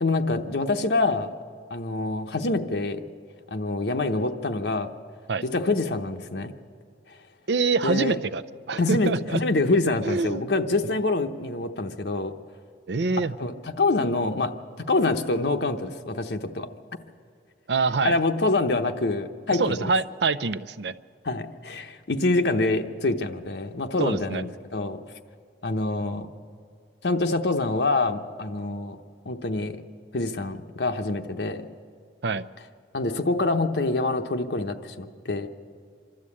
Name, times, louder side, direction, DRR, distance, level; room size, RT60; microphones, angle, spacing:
voice 1, 0.0-1.3 1.7-3.0 3.5-4.9 5.4-6.5 7.8-8.2 8.8-12.4 13.4-16.7 18.0-19.9 21.2-25.0 25.6-26.3 27.0-29.0 29.3-29.8 30.1-31.7 32.9-35.5, left 2 dB, 75° left, 6 dB, 0.9 m, -26 dB
voice 2, 7.5-8.4 8.7-9.4 10.0-10.4 12.9-13.3 17.7-18.2 19.6-20.9 24.0-24.4 32.2-32.5, right 4 dB, 75° right, 16 dB, 0.6 m, -25 dB
25.5 x 12.5 x 8.5 m, 2.3 s
head